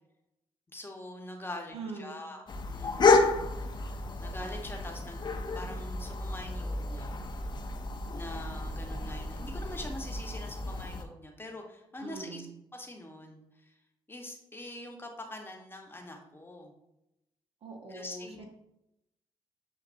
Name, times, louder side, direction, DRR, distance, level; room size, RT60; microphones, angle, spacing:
voice 1, 0.7-3.2 4.2-5.2 5.5-7.1 8.1-12.4 12.7-13.7 14.1-16.7 17.9-18.4, left 1 dB, 20° left, 1 dB, 1.0 m, -44 dB
voice 2, 1.7-2.2 12.0-12.5 17.6-18.4, right 3 dB, 60° right, 1 dB, 1.0 m, -42 dB
sound 1, 2.5-11.0, left 3 dB, 40° left, 0.6 m, -30 dB
7.3 x 2.5 x 2.5 m, 0.87 s
supercardioid pair, 60°, 11 cm